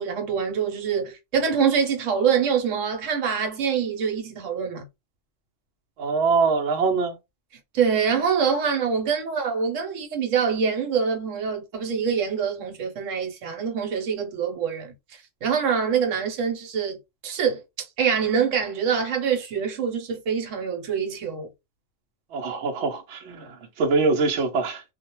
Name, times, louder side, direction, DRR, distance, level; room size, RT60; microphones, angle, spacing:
voice 1, 0.0-4.9 7.7-21.5, right 6 dB, 85° right, 1.1 m, -25 dB
voice 2, 6.0-7.2 22.3-24.8, right 4 dB, 65° right, 0.9 m, -23 dB
2.4 x 2.1 x 2.9 m
omnidirectional pair, 1.3 m